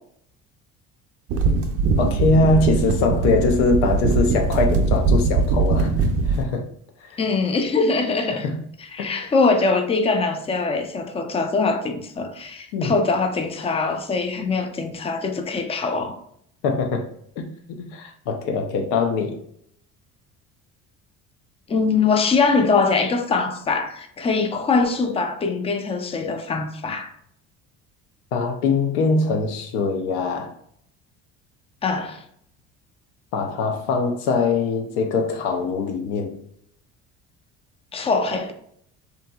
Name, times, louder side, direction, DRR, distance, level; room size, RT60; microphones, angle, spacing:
sound 1, 1.3-6.4, right 4 dB, 45° right, 0.5 m, -21 dB
voice 1, 2.0-5.9 6.3-6.6 8.4-8.6 9.0-9.1 12.7-12.9 16.6-17.1 17.8-19.4 28.3-30.5 33.3-36.3, left 3 dB, 80° left, 0.6 m, -22 dB
voice 2, 7.2-8.5 8.9-16.2 21.7-27.1 31.8-32.2 37.9-38.5, left 4 dB, 20° left, 0.4 m, -22 dB
2.8 x 2.5 x 2.3 m
hypercardioid pair, 75°, 34 cm